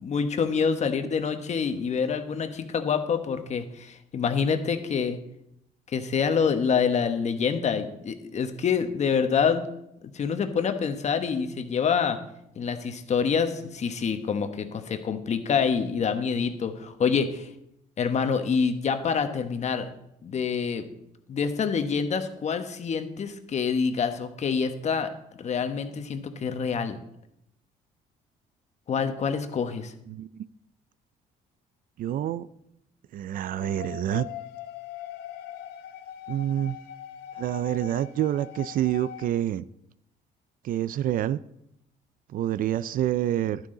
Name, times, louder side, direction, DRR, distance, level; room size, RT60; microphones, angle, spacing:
voice 1, 0.0-5.2 5.9-9.6 10.1-12.2 12.5-17.5 18.0-19.9 20.2-20.9 21.3-25.1 25.3-27.0 28.9-29.9, left 6 dB, 40° left, 8 dB, 1.2 m, -26 dB
voice 2, 30.1-30.4 32.0-32.5 33.1-34.3 36.3-36.8 37.4-39.6 40.6-41.4 42.3-43.6, right 12 dB, 55° right, 16 dB, 0.4 m, -27 dB
sound 1, 33.6-39.3, left 11 dB, 75° left, 0.8 m, -41 dB
11.0 x 10.5 x 3.9 m, 0.80 s
cardioid pair, 110°, 17 cm